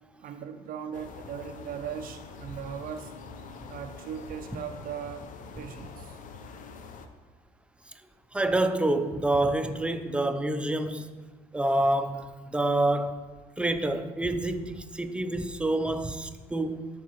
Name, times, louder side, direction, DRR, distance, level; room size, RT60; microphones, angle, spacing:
voice 1, 0.2-3.1 3.7-5.3 5.6-6.2, right 8 dB, 60° right, 0.4 m, -38 dB
sound 1, 0.9-7.1, left 4 dB, 50° left, 0.6 m, -45 dB
voice 2, 8.3-11.1 11.5-13.2 13.6-16.9, right 1 dB, 5° right, 0.5 m, -27 dB
11.5 x 4.7 x 3.0 m
cardioid pair, 110°, 17 cm